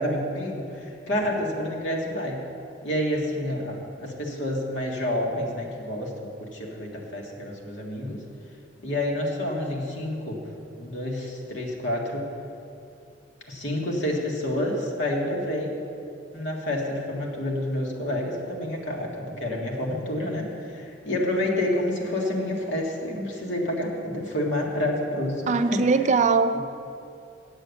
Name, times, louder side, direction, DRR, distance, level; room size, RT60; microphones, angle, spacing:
voice 1, 0.0-2.4 2.8-8.2 8.8-10.4 10.8-12.3 13.5-15.7 16.3-25.8, left 1 dB, 80° left, -1 dB, 1.8 m, -28 dB
voice 2, 25.5-26.6, right 4 dB, 40° right, 10 dB, 0.4 m, -21 dB
8.9 x 6.8 x 8.1 m, 2.7 s
head